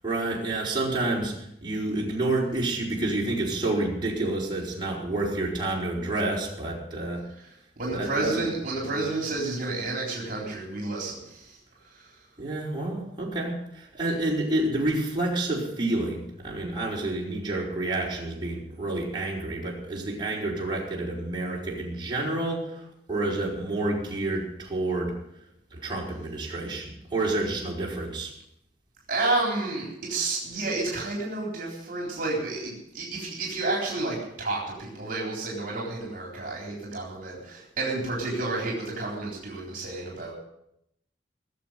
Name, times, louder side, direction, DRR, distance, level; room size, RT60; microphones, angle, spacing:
voice 1, 0.0-7.2 7.9-8.5 8.8-9.0 12.4-25.1 25.7-28.3, right 2 dB, 25° right, -4 dB, 5.2 m, -29 dB
voice 2, 7.8-11.6 11.8-12.2 29.1-40.3, right 2 dB, 55° right, -3 dB, 4.0 m, -30 dB
19.0 x 7.6 x 9.4 m, 0.80 s
head